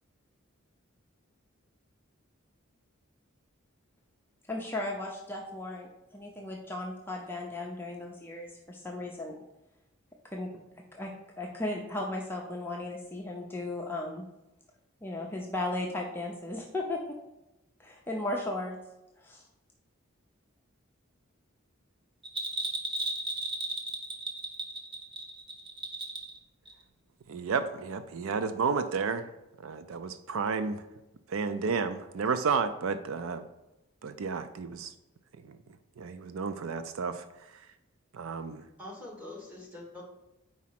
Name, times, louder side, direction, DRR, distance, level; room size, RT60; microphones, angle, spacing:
voice 1, 4.5-9.4 10.3-10.5 10.9-14.3 15.0-17.2 17.8-18.8 19.2-19.5, left 2 dB, 10° left, -1 dB, 0.6 m, -36 dB
Bell, 22.2-26.4 26.7-26.8, right 2 dB, 25° right, 0.8 m, -35 dB
voice 2, 27.3-29.3 29.6-30.8 31.3-33.5 34.0-34.9 35.4-35.6 36.0-37.2 37.5-37.6 38.1-38.7, right 5 dB, 75° right, 10 dB, 0.4 m, -31 dB
voice 3, 38.8-40.0, left 2 dB, 5° right, -3 dB, 1.3 m, -44 dB
4.8 x 4.2 x 5.8 m, 0.94 s
head